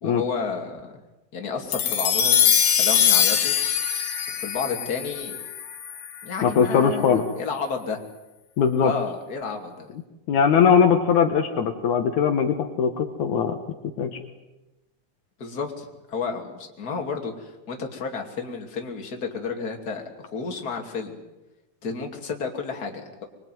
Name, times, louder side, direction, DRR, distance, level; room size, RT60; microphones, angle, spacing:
voice 1, 0.0-0.9 1.3-3.6 4.3-5.4 6.2-8.0 8.8-9.9 15.4-20.0 20.3-21.2 21.8-23.2, left 5 dB, 30° left, 2 dB, 2.9 m, -31 dB
sound 1, 1.7-6.2, left 8 dB, 85° left, 3.7 m, -22 dB
voice 2, 6.4-7.2 8.6-8.9 10.3-13.6 14.0-14.2, left 7 dB, 65° left, 5 dB, 2.7 m, -20 dB
25.0 x 22.5 x 9.3 m, 1.0 s
omnidirectional pair, 3.8 m